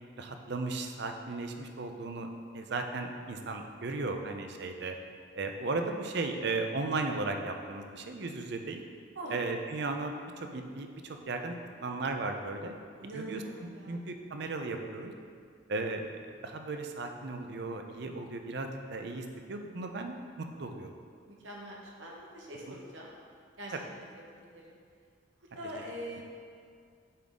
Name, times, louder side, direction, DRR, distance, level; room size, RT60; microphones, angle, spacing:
voice 1, 0.2-2.3 2.5-5.0 5.4-8.8 9.3-11.5 11.8-12.7 13.1-15.1 15.7-16.1 16.4-20.9 23.7-23.8, right 3 dB, 55° right, 5 dB, 0.5 m, -36 dB
voice 2, 13.0-14.0 21.3-23.1 23.6-24.1 24.5-24.8 25.5-26.2, equal, 75° right, -2 dB, 1.2 m, -43 dB
8.5 x 3.9 x 3.6 m, 2.2 s
head